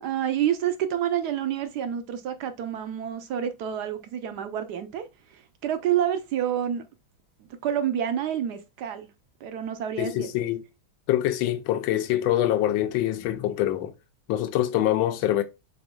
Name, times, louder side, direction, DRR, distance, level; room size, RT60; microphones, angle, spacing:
voice 1, 0.0-5.1 5.3-6.8 7.6-9.1 9.4-10.3, right 10 dB, 70° right, 1.0 m, -28 dB
voice 2, 10.0-10.6 11.1-13.9 14.3-15.4, left 13 dB, 85° left, 1.4 m, -24 dB
4.9 x 4.3 x 2.3 m
omnidirectional pair, 2.2 m